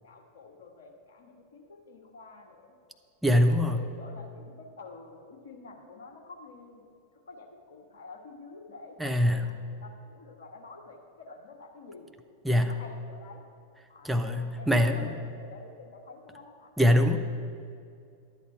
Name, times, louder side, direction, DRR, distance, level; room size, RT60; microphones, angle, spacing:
voice 1, 0.0-2.7 3.4-6.8 7.3-12.1 12.7-13.4 13.9-16.7, left 3 dB, 60° left, 2 dB, 1.4 m, -49 dB
voice 2, 3.2-3.8 9.0-9.5 12.4-12.7 14.0-15.1 16.8-17.2, equal, 5° right, 5 dB, 0.7 m, -23 dB
11.5 x 8.3 x 4.6 m, 2.4 s
figure-of-eight pair, 90°, 0 cm